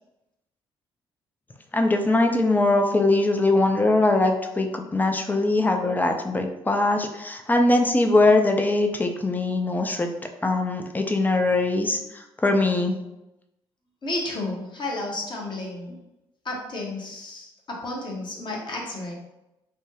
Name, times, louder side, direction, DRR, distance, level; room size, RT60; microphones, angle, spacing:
voice 1, 1.7-13.0, left 2 dB, 15° left, 4 dB, 0.5 m, -22 dB
voice 2, 14.0-15.9 16.4-19.1, left 2 dB, 40° left, -1 dB, 1.0 m, -32 dB
3.2 x 2.1 x 3.1 m, 0.91 s
figure-of-eight pair, 45°, 13 cm